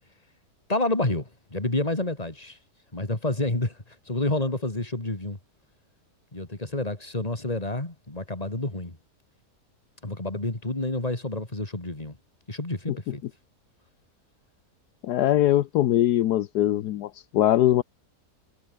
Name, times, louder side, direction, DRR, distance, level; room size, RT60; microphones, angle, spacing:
voice 1, 0.7-2.6 2.9-3.8 4.1-5.4 6.3-9.0 10.0-12.2 12.5-13.2, left 2 dB, 20° left, 3.4 m, -29 dB
voice 2, 15.0-17.8, left 13 dB, 80° left, 1.3 m, -22 dB
omnidirectional pair, 1.8 m